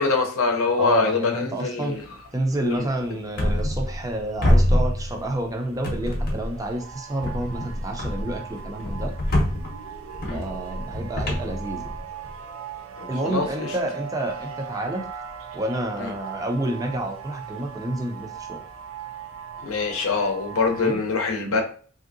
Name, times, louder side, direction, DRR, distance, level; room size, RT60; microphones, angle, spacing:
voice 1, 0.0-2.0 2.6-2.9 10.2-10.4 13.0-13.7 16.0-16.1 19.6-21.6, left 4 dB, 80° left, 4 dB, 0.6 m, -24 dB
voice 2, 0.8-2.0 2.3-9.1 10.3-11.9 13.1-15.0 15.5-18.6 20.8-21.0, right 1 dB, 15° right, 3 dB, 0.4 m, -29 dB
sound 1, 1.9-21.0, right 7 dB, 75° right, 0.5 m, -40 dB
sound 2, 3.4-4.1 4.4-5.5 5.8-6.7 7.2-12.3, left 1 dB, 45° left, 0.7 m, -25 dB
3.3 x 2.6 x 2.5 m, 0.43 s
head